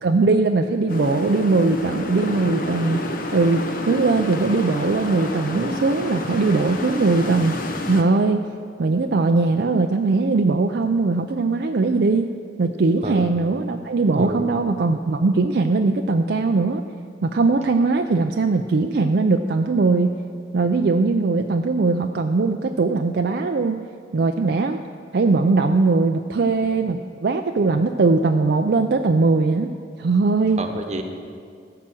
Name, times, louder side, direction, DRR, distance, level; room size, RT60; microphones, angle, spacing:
voice 1, 0.0-3.0 3.3-7.6 7.9-8.4 8.8-12.3 12.6-16.8 17.2-20.2 20.5-23.8 24.1-24.8 25.1-29.7 30.0-30.6, right 3 dB, 60° right, 5 dB, 0.4 m, -20 dB
sound 1, 0.9-8.0, left 1 dB, 50° left, 1.0 m, -29 dB
voice 2, 14.2-14.5 30.6-31.0, right 1 dB, 35° right, 5 dB, 1.0 m, -28 dB
14.5 x 5.9 x 7.6 m, 2.3 s
head